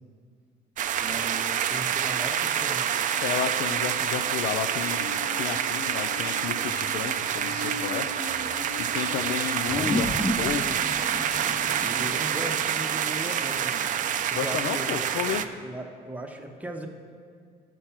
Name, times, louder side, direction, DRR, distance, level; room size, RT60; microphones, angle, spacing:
sound 1, 0.8-15.5, right 9 dB, 50° right, 0.4 m, -27 dB
voice 1, 1.0-2.9 11.8-13.9 14.2-15.1 15.4-16.9, right 1 dB, 10° right, 2 dB, 0.9 m, -38 dB
voice 2, 3.2-8.1 8.8-10.8 14.3-15.4, left 9 dB, 80° left, 6 dB, 0.5 m, -32 dB
sound 2, 3.7-15.2 15.6-15.7, left 3 dB, 45° left, 1.1 m, -43 dB
sound 3, 9.7-14.4, equal, 10° left, 0.4 m, -34 dB
11.5 x 4.6 x 5.7 m, 2.1 s
cardioid pair, 110°, 17 cm